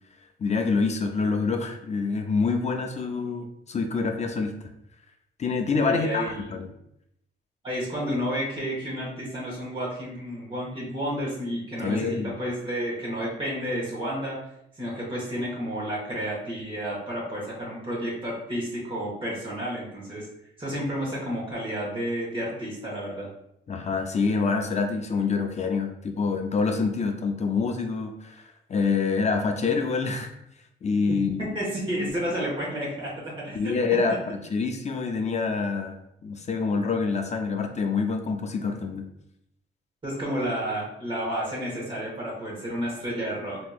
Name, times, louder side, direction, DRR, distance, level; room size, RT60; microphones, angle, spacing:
voice 1, 0.4-4.5 5.4-6.7 11.8-12.3 23.7-30.3 30.8-31.5 31.9-32.1 33.5-35.9 36.2-39.0, left 4 dB, 35° left, 4 dB, 0.4 m, -26 dB
voice 2, 5.8-6.5 7.6-14.4 14.8-20.3 20.6-23.3 31.1-33.7 40.0-43.7, equal, 25° right, -6 dB, 1.3 m, -31 dB
3.6 x 3.0 x 2.3 m, 0.78 s
cardioid pair, 90°, 20 cm